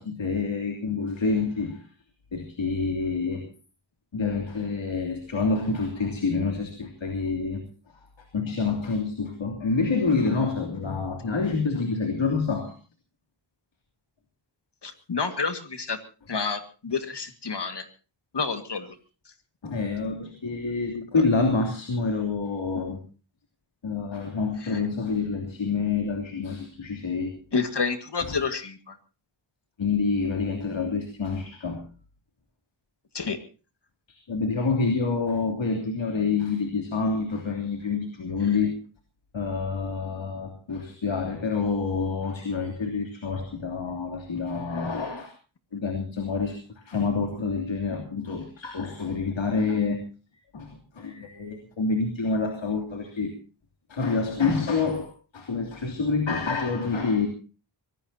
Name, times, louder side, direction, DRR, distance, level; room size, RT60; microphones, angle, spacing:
voice 1, 0.0-1.9 2.3-3.5 4.1-7.6 8.2-12.7 19.6-23.0 23.8-27.4 28.3-28.4 29.8-31.8 34.1-38.7 39.3-45.3 45.7-50.0 50.5-50.7 50.9-53.3 53.9-57.3, left 4 dB, 75° left, 3 dB, 3.2 m, -27 dB
voice 2, 14.8-16.0 16.3-17.9 18.3-19.0 24.6-24.8 27.5-29.0 33.1-33.4, left 5 dB, 60° left, 8 dB, 2.0 m, -29 dB
24.5 x 18.5 x 2.8 m, 0.35 s
wide cardioid pair, 115°, 46 cm